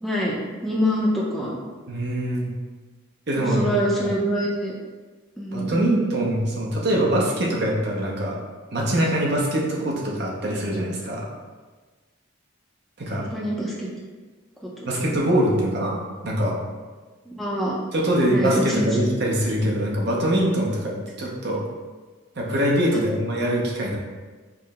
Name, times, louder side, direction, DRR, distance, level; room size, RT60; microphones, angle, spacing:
voice 1, 0.0-1.6 3.3-4.7 5.4-5.8 13.1-13.9 17.3-17.7 18.2-18.9, equal, ahead, -5 dB, 0.5 m, -25 dB
voice 2, 1.9-2.5 3.3-3.7 4.0-4.1 5.5-8.4 8.7-11.3 13.0-13.3 14.9-16.0 16.2-16.6 17.9-21.6 22.4-24.0, right 1 dB, 50° right, -3 dB, 0.7 m, -23 dB
4.7 x 2.0 x 3.5 m, 1.3 s
head